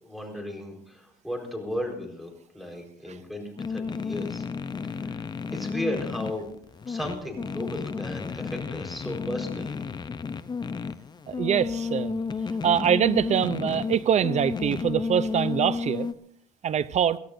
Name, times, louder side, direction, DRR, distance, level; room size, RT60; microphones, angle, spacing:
voice 1, 0.0-4.5 4.8-5.2 5.5-6.5 6.9-9.8, left 1 dB, ahead, 4.5 m, -35 dB
sound 1, 3.6-16.1, left 5 dB, 25° left, 0.7 m, -32 dB
voice 2, 11.3-12.2 12.6-16.1 16.6-17.2, right 8 dB, 45° right, 0.6 m, -24 dB
23.5 x 15.5 x 2.7 m
cardioid pair, 110°, 17 cm